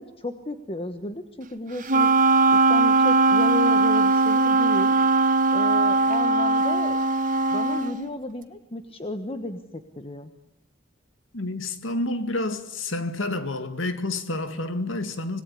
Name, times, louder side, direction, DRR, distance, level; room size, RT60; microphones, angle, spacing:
voice 1, 0.0-2.1 2.5-4.9 5.5-7.0 7.5-10.3, left 1 dB, 30° left, 1.3 m, -33 dB
Wind instrument woodwind instrument, 1.9-8.0, right 3 dB, 40° right, 1.4 m, -20 dB
voice 2, 11.3-15.4, left 2 dB, 80° left, 2.2 m, -29 dB
26.0 x 20.0 x 10.0 m
head